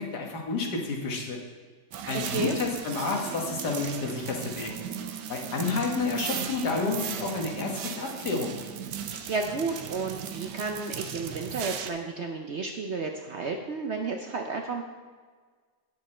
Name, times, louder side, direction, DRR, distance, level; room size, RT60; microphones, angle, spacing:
voice 1, 0.0-1.4 2.1-4.7 5.3-8.5, left 3 dB, 75° left, 1 dB, 2.0 m, -30 dB
sound 1, 1.9-11.9, right 8 dB, 85° right, 1.3 m, -37 dB
voice 2, 2.1-2.6 9.1-14.8, right 4 dB, 60° right, 3 dB, 0.7 m, -32 dB
9.7 x 8.2 x 4.3 m, 1.5 s
omnidirectional pair, 1.8 m